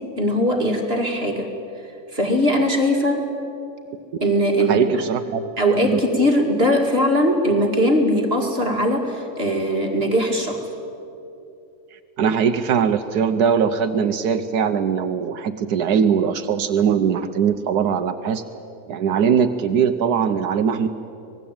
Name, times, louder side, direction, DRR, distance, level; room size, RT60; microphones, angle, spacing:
voice 1, 0.0-1.5 2.1-3.3 4.2-5.0 5.6-10.6, equal, 40° right, 2 dB, 2.5 m, -20 dB
voice 2, 4.7-5.5 5.8-6.0 11.9-18.4 18.9-20.9, right 7 dB, 85° right, 8 dB, 1.4 m, -21 dB
25.5 x 19.5 x 8.8 m, 2.8 s
omnidirectional pair, 1.6 m